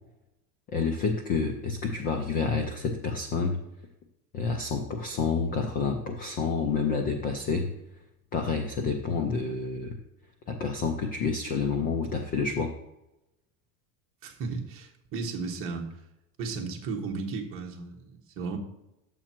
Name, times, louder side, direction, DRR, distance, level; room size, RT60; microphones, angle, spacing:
voice 1, 0.7-3.6 4.3-7.7 8.3-10.0 10.5-12.8, left 4 dB, 20° left, 4 dB, 0.3 m, -29 dB
voice 2, 14.2-16.0 16.4-18.6, right 4 dB, 30° right, 2 dB, 1.3 m, -35 dB
9.9 x 7.4 x 4.4 m, 0.90 s
cardioid pair, 170°, 45 cm